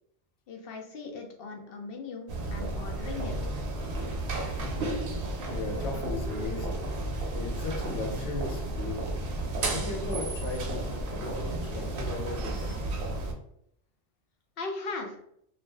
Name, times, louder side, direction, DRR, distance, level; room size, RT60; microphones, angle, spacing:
voice 1, 0.5-3.6 14.6-15.2, left 3 dB, 60° left, 2 dB, 0.7 m, -39 dB
sound 1, 2.3-13.3, right 2 dB, 60° right, 0.7 m, -33 dB
voice 2, 4.6-4.9 5.5-6.8 7.3-9.1 9.7-12.8, left 3 dB, 90° left, 2 dB, 1.0 m, -37 dB
2.5 x 2.1 x 3.2 m, 0.71 s
omnidirectional pair, 1.2 m